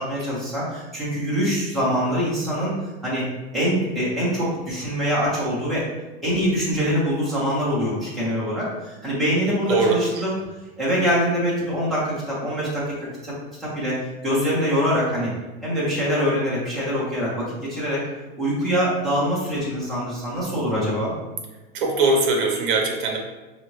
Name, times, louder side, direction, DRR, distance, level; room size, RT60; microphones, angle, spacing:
voice 1, 0.0-2.7 3.0-3.3 3.5-5.9 6.2-10.3 10.8-13.0 13.2-14.0 14.2-15.3 15.6-18.0 18.4-21.1, equal, ahead, -9 dB, 0.3 m, -24 dB
voice 2, 9.7-10.2 21.7-23.2, right 3 dB, 60° right, 2 dB, 0.9 m, -21 dB
4.7 x 2.6 x 3.0 m, 1.2 s
supercardioid pair, 175°, 30 cm